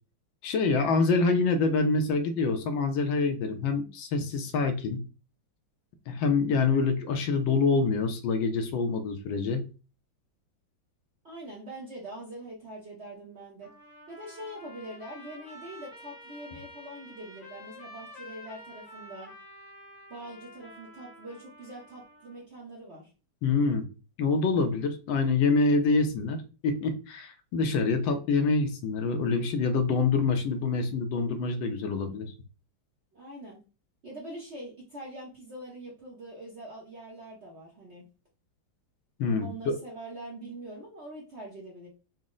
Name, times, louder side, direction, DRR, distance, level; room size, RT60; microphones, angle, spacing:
voice 1, 0.4-5.0 6.1-9.6 23.4-23.9 24.2-32.3 39.2-39.7, left 4 dB, 80° left, 7 dB, 1.4 m, -26 dB
voice 2, 11.2-13.7 14.1-19.3 20.1-23.1 33.1-33.6 34.0-38.0 39.4-41.9, right 1 dB, 55° right, -3 dB, 0.8 m, -43 dB
Trumpet, 13.6-22.4, left 1 dB, 30° left, 0.8 m, -49 dB
4.1 x 2.0 x 3.7 m, 0.33 s
omnidirectional pair, 2.1 m